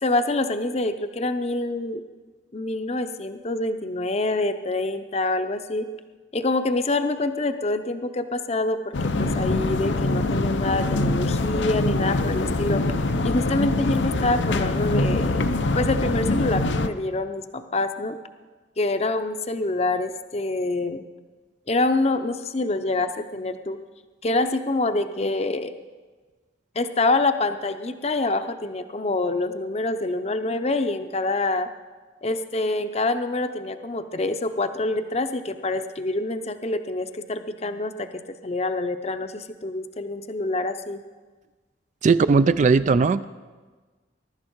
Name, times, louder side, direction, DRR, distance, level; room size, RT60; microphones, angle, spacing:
voice 1, 0.0-2.0 2.5-5.9 6.3-12.8 13.2-18.2 18.8-21.0 21.7-23.8 24.2-25.7 26.8-31.7 32.2-41.0, left 2 dB, 35° left, 9 dB, 0.7 m, -26 dB
sound 1, 8.9-16.9, left 2 dB, 85° left, 0.8 m, -24 dB
voice 2, 42.0-43.2, right 4 dB, 40° right, 13 dB, 0.3 m, -18 dB
21.5 x 12.0 x 4.6 m, 1.4 s
head